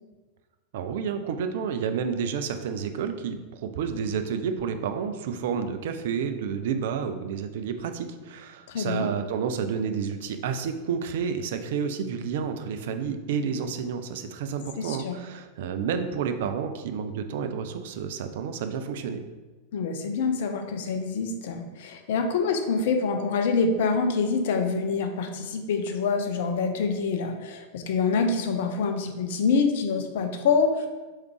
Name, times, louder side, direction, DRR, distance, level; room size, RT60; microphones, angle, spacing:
voice 1, 0.7-19.2, right 6 dB, 55° right, 7 dB, 0.3 m, -30 dB
voice 2, 8.7-9.1 14.8-15.2 19.7-30.9, left 4 dB, 55° left, 5 dB, 0.4 m, -26 dB
3.6 x 3.2 x 3.2 m, 1.2 s
figure-of-eight pair, 90°, 0 cm